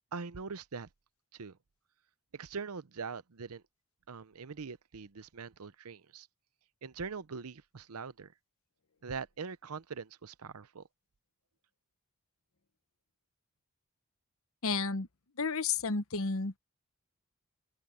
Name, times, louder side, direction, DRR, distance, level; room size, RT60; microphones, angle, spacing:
voice 1, 0.1-0.9 1.3-1.6 2.3-3.6 4.1-6.3 6.8-8.3 9.0-10.8, right 5 dB, 85° right, 0.7 m, -42 dB
voice 2, 14.6-15.1 15.4-16.6, left 4 dB, 70° left, 1.0 m, -31 dB
open air
head